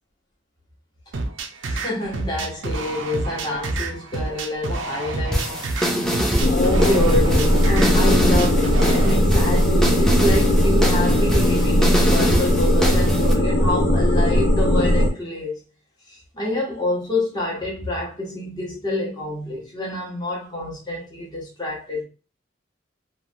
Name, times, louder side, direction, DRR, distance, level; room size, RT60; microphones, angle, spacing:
sound 1, 1.1-9.1, right 3 dB, 80° right, 0.5 m, -29 dB
voice 1, 1.6-5.7 6.5-15.6 16.1-22.0, left 1 dB, 20° left, 0.7 m, -27 dB
sound 2, 5.3-13.3, equal, 5° left, 0.4 m, -24 dB
sound 3, 6.4-15.1, left 1 dB, 75° left, 0.7 m, -18 dB
3.0 x 2.1 x 2.6 m
head